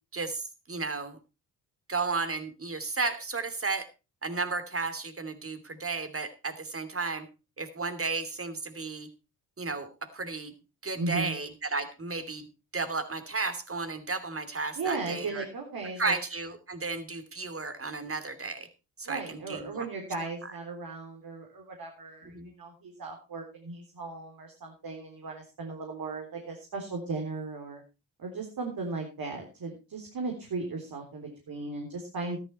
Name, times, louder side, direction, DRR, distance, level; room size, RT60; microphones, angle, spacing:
voice 1, 0.1-1.2 1.9-3.9 4.2-7.3 7.6-9.1 9.6-10.5 10.8-12.4 12.7-15.4 16.0-18.7 19.0-19.9 22.2-22.5, right 3 dB, 30° right, 11 dB, 2.9 m, -33 dB
voice 2, 11.0-11.4 14.8-16.1 19.1-27.8 28.2-32.4, right 3 dB, 55° right, 2 dB, 3.8 m, -36 dB
13.5 x 11.5 x 4.3 m, 0.30 s
hypercardioid pair, 50°, 43 cm